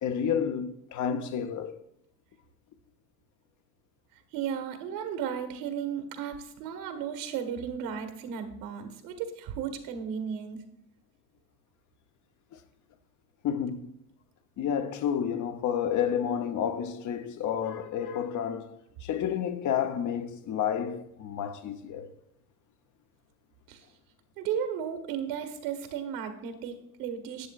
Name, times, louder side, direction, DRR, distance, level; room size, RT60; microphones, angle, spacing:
voice 1, 0.0-1.8 12.5-12.6 13.4-13.9 14.6-22.1, left 8 dB, 40° left, 0.9 m, -30 dB
voice 2, 4.3-10.6 23.7-23.8 24.4-27.5, right 8 dB, 65° right, 1.7 m, -34 dB
11.5 x 7.7 x 2.5 m
hypercardioid pair, 90°, 47 cm